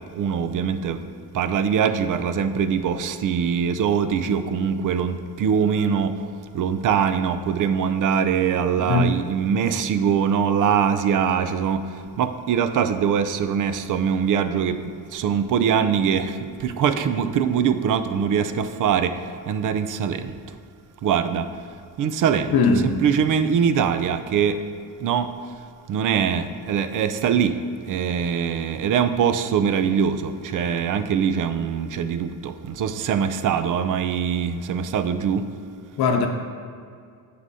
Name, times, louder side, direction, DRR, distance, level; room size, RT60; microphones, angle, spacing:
voice 1, 0.1-1.0 1.3-6.1 6.5-14.8 15.1-19.2 19.5-20.4 21.0-21.5 22.0-22.6 22.8-24.6 25.0-25.3 25.9-27.6 27.8-35.5, right 7 dB, 55° right, 10 dB, 0.5 m, -22 dB
voice 2, 8.8-9.1 22.5-22.9 36.0-36.3, left 4 dB, 75° left, 4 dB, 0.8 m, -19 dB
9.5 x 7.6 x 2.7 m, 2.3 s
cardioid pair, 160°, 38 cm